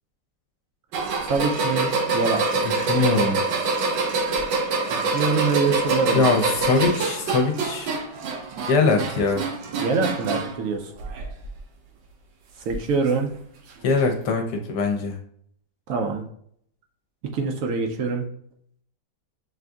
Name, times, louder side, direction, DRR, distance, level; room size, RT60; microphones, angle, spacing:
sound 1, 0.9-10.6 11.0-11.6 12.7-12.8 13.9-14.0, right 3 dB, 90° right, 1.4 m, -26 dB
voice 1, 1.2-2.7 4.9-6.4 9.8-10.9 12.6-13.3 15.9-16.2 17.3-18.3, right 4 dB, 70° right, 3 dB, 0.7 m, -25 dB
voice 2, 2.6-3.4 6.1-8.0 8.7-9.4 13.8-15.2, left 4 dB, 70° left, 3 dB, 1.2 m, -22 dB
5.9 x 2.6 x 2.3 m, 0.66 s
omnidirectional pair, 1.9 m